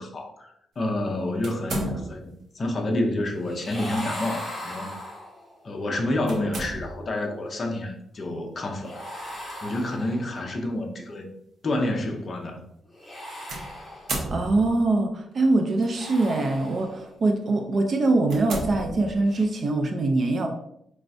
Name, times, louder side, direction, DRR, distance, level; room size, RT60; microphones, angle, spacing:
voice 1, 0.0-2.3 2.5-4.9 5.6-9.0 9.6-11.4 11.6-12.6, left 1 dB, 30° left, 2 dB, 0.6 m, -29 dB
sound 1, 1.4-2.4 3.7-4.0 4.5-4.6 6.3-7.2 9.2-9.5 10.4-10.5 13.5-14.9 15.8-16.2 16.8-17.0 17.5-17.6 18.2-19.5, right 2 dB, 60° right, 0.9 m, -34 dB
sound 2, 3.4-5.6 8.8-10.5 12.9-14.4 15.8-17.2 19.2-19.4, left 1 dB, 15° left, 1.2 m, -38 dB
voice 2, 14.3-20.5, right 2 dB, 40° right, 4 dB, 0.4 m, -23 dB
4.4 x 3.1 x 2.6 m, 0.77 s
wide cardioid pair, 165°, 0 cm